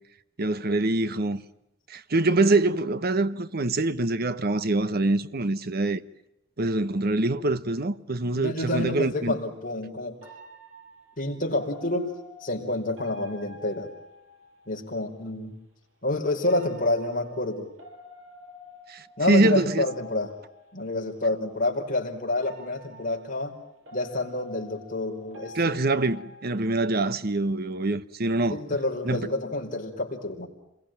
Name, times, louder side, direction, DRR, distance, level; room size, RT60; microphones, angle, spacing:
voice 1, 0.4-1.4 1.9-6.0 6.6-9.4 18.9-19.9 25.5-28.6 29.0-29.2, right 2 dB, 50° right, 1.0 m, -24 dB
voice 2, 8.3-10.2 11.2-12.1 12.4-13.9 14.7-15.5 16.0-17.7 19.2-20.3 20.7-23.5 23.9-25.6 28.5-30.5, left 2 dB, 45° left, 4.8 m, -28 dB
sound 1, 10.2-14.8 16.4-21.0 22.4-27.0, left 1 dB, 90° right, 6.5 m, -48 dB
27.0 x 22.0 x 9.0 m
head